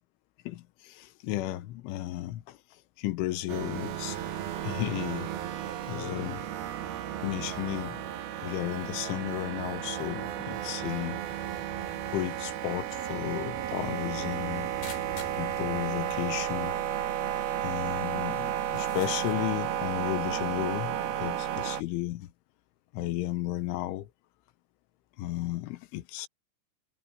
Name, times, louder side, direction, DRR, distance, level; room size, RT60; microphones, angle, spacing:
voice 1, 0.5-2.6 3.0-4.2 4.6-5.3 5.9-6.5 7.2-8.0 8.4-11.2 12.1-14.7 15.3-16.8 17.6-22.3 22.9-24.1 25.2-26.3, left 16 dB, 90° left, 3.6 m, -34 dB
sound 1, 3.5-21.8, right 10 dB, 65° right, 3.2 m, -33 dB
sound 2, 14.8-15.5 16.5-16.6 16.8-16.9 17.5-17.6 18.6-19.4, left 5 dB, 70° left, 9.4 m, -46 dB
omnidirectional pair, 5.4 m